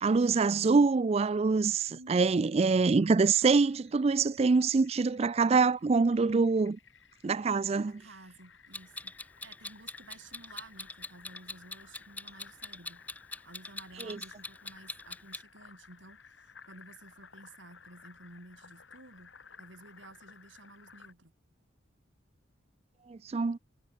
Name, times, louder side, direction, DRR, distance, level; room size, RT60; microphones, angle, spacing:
voice 1, 0.0-6.8 7.2-7.9 14.0-14.2 23.1-23.6, right 4 dB, 35° right, 0.4 m, -25 dB
voice 2, 1.9-2.7 7.8-9.1 9.4-13.0 13.4-19.3 19.6-21.3, right 2 dB, 85° right, 6.9 m, -53 dB
Fill (with liquid), 3.1-21.1, left 6 dB, 80° left, 5.0 m, -57 dB
Clock, 8.7-15.4, left 2 dB, 10° left, 3.3 m, -42 dB
head